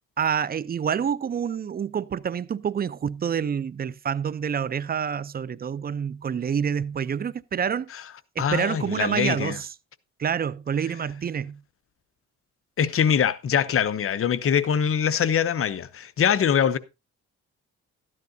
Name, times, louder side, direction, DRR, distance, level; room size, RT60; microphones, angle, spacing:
voice 1, 0.2-7.9 8.4-9.7 10.2-11.6, right 7 dB, 30° right, 0.5 m, -27 dB
voice 2, 8.4-9.6 12.8-16.8, left 8 dB, 45° left, 0.8 m, -23 dB
13.0 x 11.0 x 2.6 m
cardioid pair, 90°, 30 cm